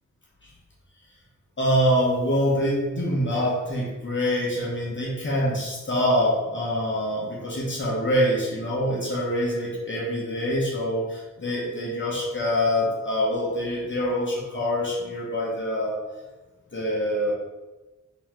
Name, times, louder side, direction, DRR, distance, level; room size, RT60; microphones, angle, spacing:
voice 1, 1.6-16.0 16.7-17.3, equal, 40° left, -4 dB, 0.9 m, -25 dB
3.8 x 3.0 x 3.0 m, 1.2 s
wide cardioid pair, 100°, 30 cm